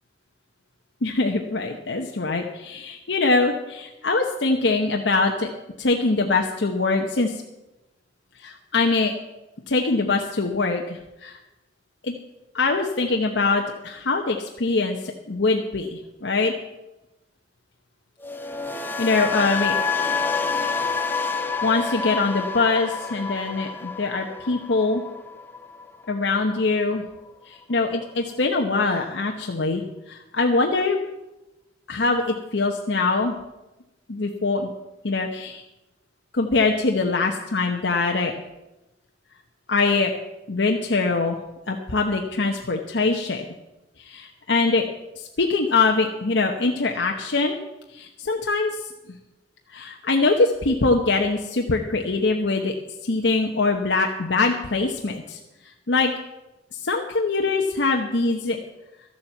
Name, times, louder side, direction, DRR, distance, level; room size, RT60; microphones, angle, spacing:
voice 1, 1.0-5.5 5.8-7.4 8.4-9.1 9.7-11.4 12.0-12.1 12.5-16.5 19.0-20.1 21.6-25.0 26.1-27.0 27.5-31.0 31.9-33.4 34.1-34.7 35.0-35.6 36.3-38.3 39.7-40.1 40.5-41.4 41.7-43.4 44.0-44.9 45.2-47.6 47.9-48.8 49.1-49.2 49.7-52.7 53.0-55.4 55.9-56.1 56.7-58.6, left 3 dB, 80° left, 2 dB, 1.0 m, -23 dB
sound 1, 18.2-26.3 26.6-26.9, left 5 dB, 10° left, 0.8 m, -28 dB
13.0 x 7.2 x 7.9 m, 0.98 s
head